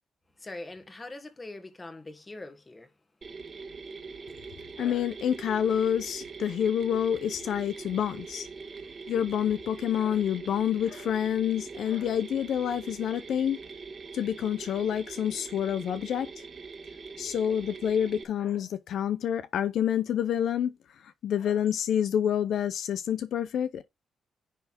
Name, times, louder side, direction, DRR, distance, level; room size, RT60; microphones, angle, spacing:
voice 1, 0.4-2.9, left 2 dB, 20° left, 1.5 m, -42 dB
Mechanisms, 3.2-18.2, right 4 dB, 40° right, 1.6 m, -43 dB
voice 2, 4.8-8.5 9.1-13.6 14.1-16.4 17.2-20.7 21.0-23.8, left 9 dB, 70° left, 0.7 m, -28 dB
10.0 x 3.4 x 6.0 m
cardioid pair, 115°, 0 cm